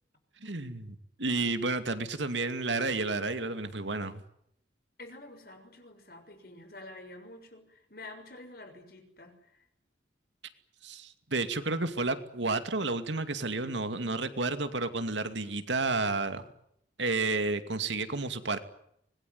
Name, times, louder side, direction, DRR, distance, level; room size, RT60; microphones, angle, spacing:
voice 1, 0.4-4.2 10.8-16.4 17.0-18.6, right 3 dB, 85° right, 9 dB, 2.4 m, -31 dB
voice 2, 5.0-9.7, left 2 dB, 55° left, 6 dB, 6.5 m, -48 dB
25.0 x 21.0 x 9.5 m, 0.74 s
head